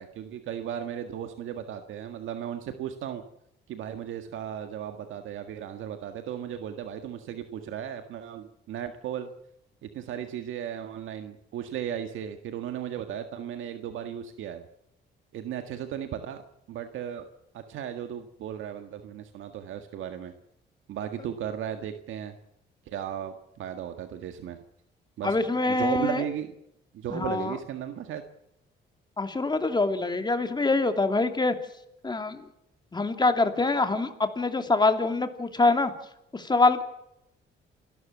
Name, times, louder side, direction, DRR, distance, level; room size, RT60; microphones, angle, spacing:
voice 1, 0.0-3.2 3.7-9.3 9.8-14.7 15.3-16.4 16.7-17.3 17.5-20.3 20.9-22.4 22.9-24.6 25.2-25.4 25.7-26.5 26.9-28.2, right 9 dB, 80° right, 7 dB, 1.8 m, -35 dB
voice 2, 25.2-26.2 27.1-27.6 29.2-31.5 32.0-32.5 32.9-35.9 36.3-36.8, left 3 dB, 20° left, 7 dB, 2.7 m, -25 dB
28.5 x 13.0 x 7.5 m, 0.79 s
cardioid pair, 90°, 20 cm